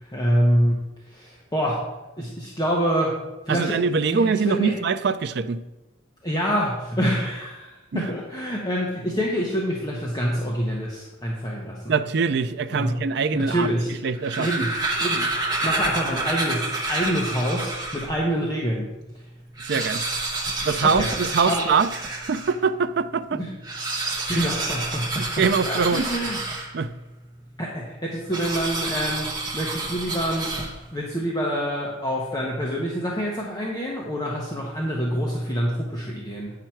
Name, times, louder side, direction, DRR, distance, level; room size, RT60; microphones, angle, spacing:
voice 1, 0.1-0.8 1.1-1.8 2.2-3.1 3.5-4.8 6.2-11.9 12.7-13.0 13.3-14.1 14.4-14.7 15.0-15.3 15.6-18.9 19.7-19.9 20.4-21.1 21.4-21.6 23.3-23.5 24.3-25.3 25.7-26.4 27.6-30.5 30.9-36.5, equal, 20° left, -3 dB, 0.9 m, -26 dB
voice 2, 3.5-5.6 7.9-8.0 11.9-13.7 14.0-14.7 19.6-20.0 20.6-21.9 22.2-23.4 24.3-24.5 25.2-26.1 26.7-26.9, right 5 dB, 55° right, 12 dB, 0.4 m, -23 dB
sound 1, 14.0-18.2 18.7-18.8 19.0-19.1 19.5-22.6 23.5-27.0 28.3-31.0, right 2 dB, 20° right, 1.0 m, -29 dB
8.9 x 5.9 x 4.5 m, 1.1 s
head